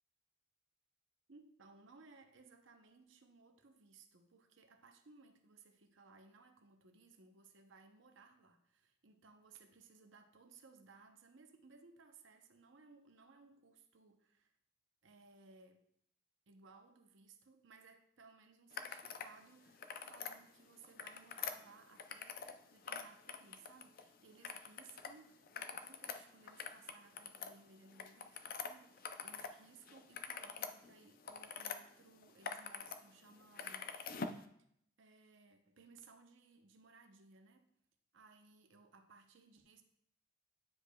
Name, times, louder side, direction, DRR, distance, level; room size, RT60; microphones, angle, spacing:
voice 1, 1.3-14.5 15.0-15.9 16.5-34.0 35.0-37.7 38.1-39.8, right 4 dB, 65° right, 6 dB, 0.7 m, -62 dB
sound 1, 18.7-19.3 19.7-20.4 20.8-22.6 22.8-24.0 24.4-25.1 25.4-29.5 29.9-31.8 32.2-33.0 33.3-34.4, left 6 dB, 45° left, 0.4 m, -45 dB
9.5 x 5.0 x 2.2 m, 0.70 s
head